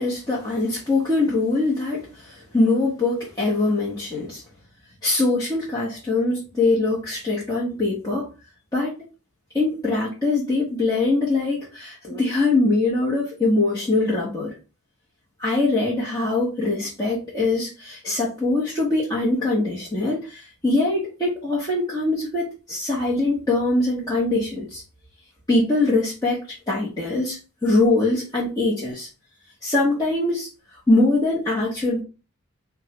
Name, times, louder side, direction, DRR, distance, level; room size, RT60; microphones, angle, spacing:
voice 1, 0.0-4.4 5.0-8.3 8.7-9.0 9.5-14.5 15.4-24.8 25.5-26.4 26.7-29.1 29.6-30.5 30.9-32.0, left 2 dB, 20° left, -7 dB, 1.1 m, -22 dB
5.4 x 2.4 x 3.1 m, 0.32 s
head